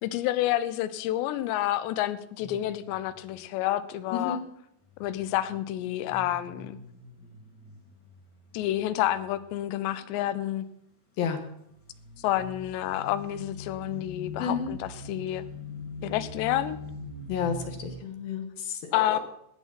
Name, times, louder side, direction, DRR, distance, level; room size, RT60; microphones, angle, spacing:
voice 1, 0.0-4.4 5.0-6.8 8.5-10.7 12.2-15.4 16.0-16.8 18.9-19.2, left 13 dB, 85° left, 14 dB, 2.9 m, -29 dB
sound 1, 2.4-3.3 4.9-9.4 9.8-10.3 11.7-18.0, left 1 dB, 35° left, 2.0 m, -43 dB
voice 2, 14.4-14.7 17.3-19.2, left 6 dB, 70° left, 6 dB, 2.7 m, -31 dB
17.5 x 7.2 x 5.8 m, 0.76 s
omnidirectional pair, 4.9 m